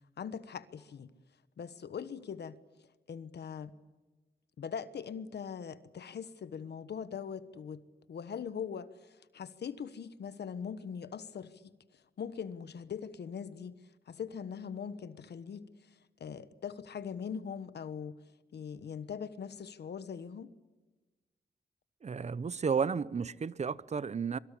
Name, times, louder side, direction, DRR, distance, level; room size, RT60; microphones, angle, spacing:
voice 1, 0.2-1.1 1.6-2.6 3.1-3.7 4.6-7.8 8.1-11.7 12.2-13.8 14.1-15.7 16.2-18.2 18.5-20.5, left 7 dB, 70° left, 1.3 m, -41 dB
voice 2, 22.0-24.4, right 6 dB, 40° right, 0.8 m, -32 dB
26.5 x 23.0 x 8.5 m
wide cardioid pair, 120°, 18 cm